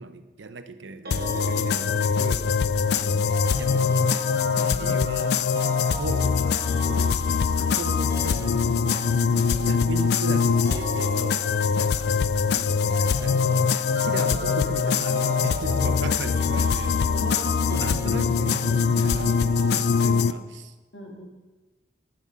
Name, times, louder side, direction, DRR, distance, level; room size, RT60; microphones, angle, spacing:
voice 1, 0.0-2.6 2.9-4.0 4.5-5.3 5.9-6.6 6.9-8.9 9.6-11.5 11.7-12.1 12.5-17.1 17.7-20.7, right 3 dB, 90° right, 10 dB, 0.8 m, -37 dB
sound 1, 1.1-20.3, left 6 dB, 65° left, 0.3 m, -23 dB
sound 2, 1.1-20.3, equal, 55° right, 1.4 m, -37 dB
voice 2, 17.1-17.8 20.0-20.5 20.9-21.3, left 1 dB, 80° left, 1 dB, 2.2 m, -39 dB
11.0 x 10.0 x 5.3 m, 1.2 s
head